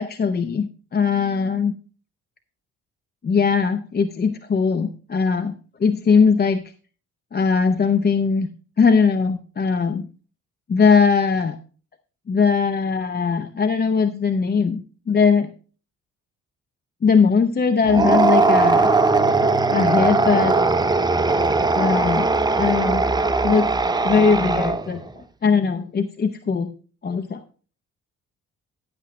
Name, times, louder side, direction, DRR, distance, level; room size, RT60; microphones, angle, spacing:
voice 1, 0.0-1.7 3.2-5.5 5.8-6.6 7.3-8.5 8.8-10.1 10.7-11.6 12.3-14.8 15.1-15.5 17.0-19.0 19.7-20.6 21.7-22.3 22.5-23.0 23.4-23.7 24.0-25.0 25.4-26.7 27.0-27.4, left 5 dB, 35° left, 9 dB, 0.7 m, -20 dB
sound 1, 17.9-25.0, right 3 dB, 15° right, 0.7 m, -19 dB
11.0 x 8.4 x 3.1 m, 0.39 s
cardioid pair, 90°, 30 cm